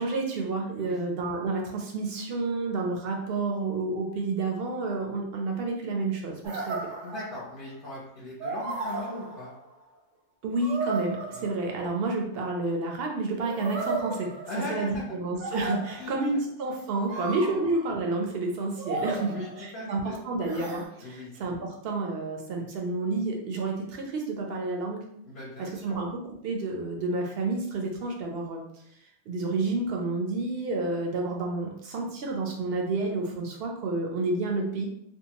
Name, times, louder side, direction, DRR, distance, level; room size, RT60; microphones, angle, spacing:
voice 1, 0.0-6.8 10.4-14.3 14.7-25.0 25.6-28.6 29.3-34.9, right 3 dB, 65° right, 1 dB, 0.7 m, -30 dB
sound 1, 6.4-7.7 8.4-9.8 10.6-12.1 13.4-14.9 15.4-16.3 17.1-18.0 18.8-19.9 20.4-20.8, right 3 dB, 85° right, 1.2 m, -35 dB
voice 2, 7.0-9.5 11.3-11.4 14.5-15.0 16.0-16.1 17.1-17.3 19.1-20.3 20.5-20.6 21.0-21.3 25.2-26.0, left 2 dB, 50° left, -6 dB, 0.9 m, -39 dB
2.6 x 2.3 x 2.8 m, 0.73 s
omnidirectional pair, 1.3 m